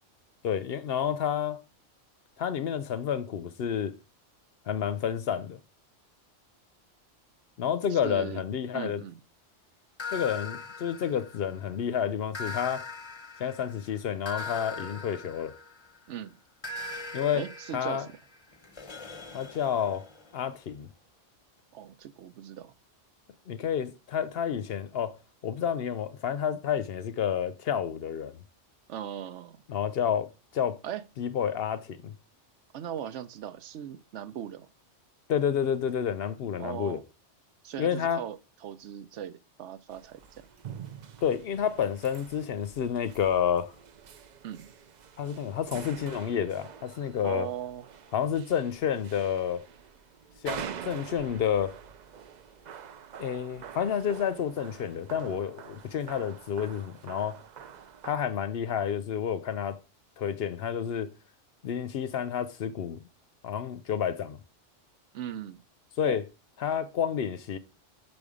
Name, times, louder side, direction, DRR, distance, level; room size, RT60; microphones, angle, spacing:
voice 1, 0.4-1.6 2.4-3.9 4.7-5.6 7.6-9.0 10.1-12.9 13.4-15.6 17.1-17.4 17.7-18.1 19.3-20.1 20.3-20.9 23.5-25.2 25.4-28.4 29.7-30.8 31.2-32.1 35.3-37.0 37.8-38.2 41.2-43.7 45.2-47.5 48.1-49.6 50.4-51.8 53.2-57.4 58.0-59.8 60.2-61.1 61.6-63.1 63.4-64.4 66.0-66.2 66.6-67.6, left 8 dB, 60° left, 0.7 m, -30 dB
voice 2, 7.9-8.4 8.7-9.2 16.1-16.4 17.3-18.2 21.7-22.7 28.9-29.6 30.8-31.0 32.7-34.7 36.6-37.0 37.6-40.5 44.4-44.7 47.2-47.9 65.1-65.6 66.0-66.2, right 10 dB, 75° right, 0.9 m, -39 dB
sound 1, 10.0-11.7 12.3-16.0 16.6-20.4, left 4 dB, 30° left, 0.7 m, -40 dB
sound 2, 39.9-58.2, right 8 dB, 55° right, 0.5 m, -46 dB
6.4 x 5.3 x 4.9 m
omnidirectional pair, 1.2 m